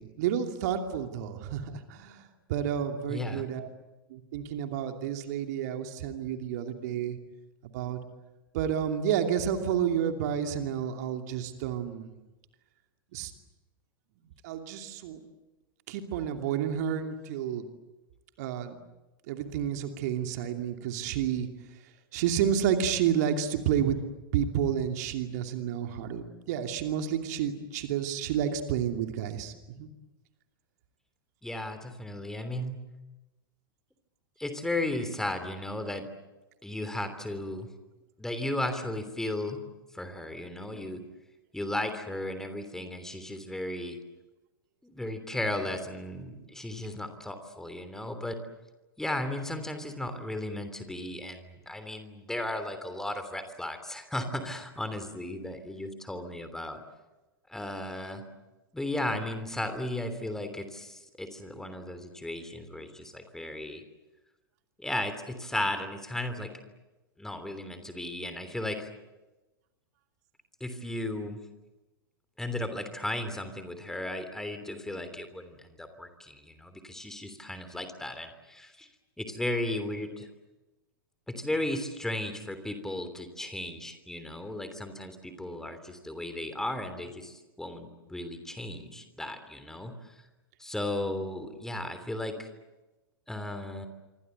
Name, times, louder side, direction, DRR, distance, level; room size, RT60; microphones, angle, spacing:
voice 1, 0.0-1.6 1.9-2.2 2.5-3.7 4.1-7.2 7.7-8.0 8.5-12.1 13.1-13.3 14.4-15.2 15.9-17.7 18.4-18.8 19.3-21.5 22.1-24.0 24.3-29.5 29.8-29.9 40.7-40.9, right 9 dB, 50° right, 6 dB, 2.7 m, -30 dB
voice 2, 3.1-3.5 31.4-32.8 34.4-36.1 36.6-37.7 38.2-39.6 39.9-41.0 41.5-44.0 44.8-48.4 49.0-56.8 57.5-58.2 58.7-63.8 64.8-66.5 67.2-68.9 70.6-71.4 72.4-78.9 79.2-80.3 81.3-90.1 90.6-92.5 93.3-93.9, left 1 dB, 5° left, 8 dB, 3.1 m, -35 dB
26.5 x 25.0 x 8.1 m, 1.1 s
figure-of-eight pair, 100°, 12 cm